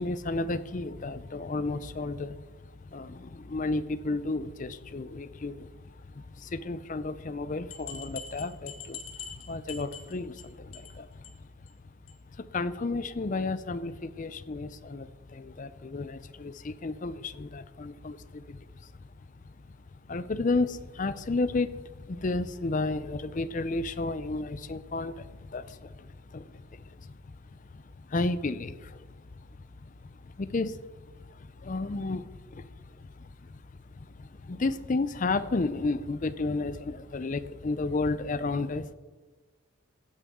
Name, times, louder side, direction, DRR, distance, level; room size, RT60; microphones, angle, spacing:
voice 1, 0.0-11.2 12.4-18.9 20.1-27.1 27.5-27.8 28.1-29.0 29.9-30.0 30.2-31.1 31.4-33.5 34.0-38.9, left 3 dB, 35° left, 14 dB, 0.5 m, -33 dB
sound 1, 7.7-10.4 10.7-11.0 11.2-11.3 11.7-11.8 12.1-12.2, left 7 dB, 70° left, 1.6 m, -43 dB
15.5 x 8.4 x 3.7 m, 1.4 s
head